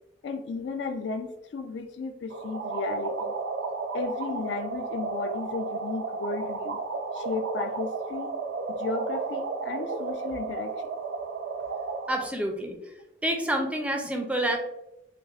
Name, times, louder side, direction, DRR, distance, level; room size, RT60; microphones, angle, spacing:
voice 1, 0.2-3.3 3.9-6.8 7.1-8.3 8.7-10.8, left 3 dB, 70° left, 7 dB, 0.4 m, -34 dB
sound 1, 2.3-12.3, right 4 dB, 80° right, 0.4 m, -33 dB
voice 2, 12.1-12.8 13.2-14.6, right 1 dB, 5° right, 3 dB, 0.4 m, -28 dB
5.7 x 2.1 x 2.3 m, 0.88 s
head